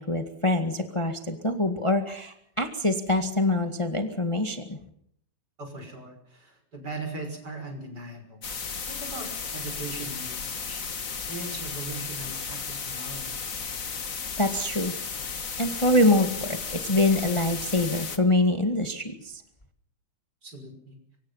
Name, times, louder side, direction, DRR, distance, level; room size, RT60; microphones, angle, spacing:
voice 1, 0.0-4.8 14.4-14.9 15.4-19.4, left 1 dB, 35° left, 6 dB, 0.5 m, -25 dB
voice 2, 5.6-10.8 11.3-13.5 20.4-21.0, right 2 dB, 25° right, 5 dB, 6.3 m, -40 dB
sound 1, 8.4-18.2, left 5 dB, 60° left, 0.8 m, -34 dB
25.0 x 25.0 x 5.7 m, 0.70 s
omnidirectional pair, 4.3 m